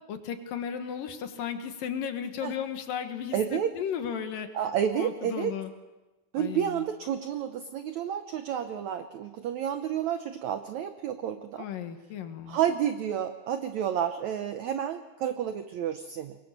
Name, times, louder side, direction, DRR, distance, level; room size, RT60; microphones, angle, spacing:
voice 1, 0.1-4.5 4.9-5.7 6.4-6.8 11.6-12.6, left 8 dB, 70° left, 7 dB, 3.0 m, -35 dB
voice 2, 3.3-3.7 4.5-5.6 6.3-11.7 12.5-16.4, right 9 dB, 80° right, 9 dB, 1.6 m, -30 dB
24.0 x 22.0 x 6.7 m, 1.1 s
omnidirectional pair, 4.3 m